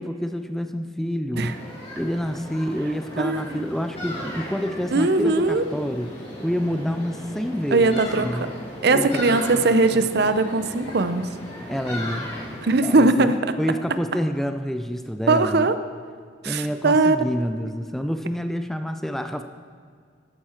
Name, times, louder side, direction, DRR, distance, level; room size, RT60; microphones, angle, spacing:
voice 1, 0.0-1.6 1.9-8.5 8.9-10.1 11.7-12.3 12.8-13.3 13.6-15.7 16.4-19.4, equal, ahead, 7 dB, 0.4 m, -28 dB
sound 1, 1.3-12.7, equal, 30° left, 2.9 m, -36 dB
voice 2, 3.2-3.6 4.9-5.7 7.7-8.3 8.8-11.3 12.6-13.4 15.3-15.7 16.4-17.2, right 3 dB, 60° right, 11 dB, 0.6 m, -20 dB
13.5 x 9.7 x 4.4 m, 2.1 s
head